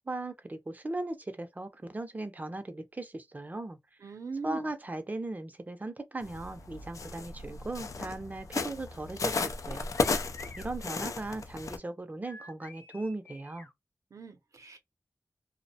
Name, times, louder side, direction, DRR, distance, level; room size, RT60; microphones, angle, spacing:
voice 1, 0.1-3.8 4.4-9.9 10.6-13.7, right 2 dB, 30° right, 0.5 m, -38 dB
voice 2, 4.0-4.7 14.1-14.8, right 4 dB, 85° right, 0.6 m, -40 dB
sound 1, 6.2-11.8, left 4 dB, 80° left, 0.4 m, -34 dB
sound 2, 9.9-10.7 12.3-13.7, left 2 dB, 35° left, 0.6 m, -49 dB
2.5 x 2.0 x 2.7 m
wide cardioid pair, 95°, 5 cm